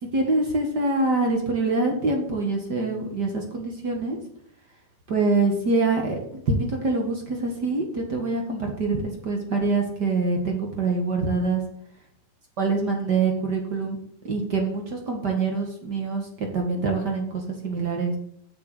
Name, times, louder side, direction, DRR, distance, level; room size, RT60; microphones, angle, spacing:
voice 1, 0.1-4.2 5.1-11.6 12.6-14.0 14.2-18.1, right 3 dB, 40° right, 2 dB, 1.6 m, -25 dB
7.5 x 7.1 x 8.1 m, 0.69 s
omnidirectional pair, 4.4 m